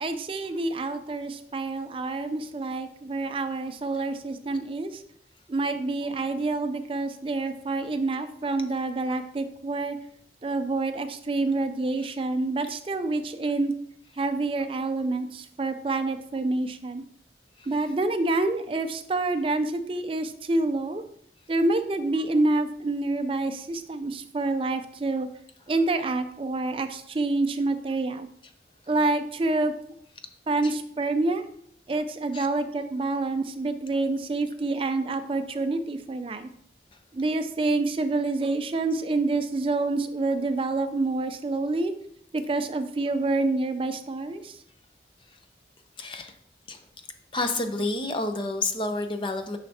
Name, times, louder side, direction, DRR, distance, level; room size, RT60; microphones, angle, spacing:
voice 1, 0.0-5.0 5.5-10.0 10.4-13.7 14.2-17.0 17.7-21.0 21.5-25.3 25.7-28.3 28.9-29.7 30.5-31.5 31.9-36.5 37.1-41.9 42.3-44.6, right 2 dB, 30° right, 9 dB, 0.4 m, -27 dB
voice 2, 46.0-46.4 46.7-46.8 47.3-49.6, left 2 dB, 30° left, 7 dB, 0.6 m, -30 dB
9.7 x 5.7 x 2.7 m, 0.68 s
head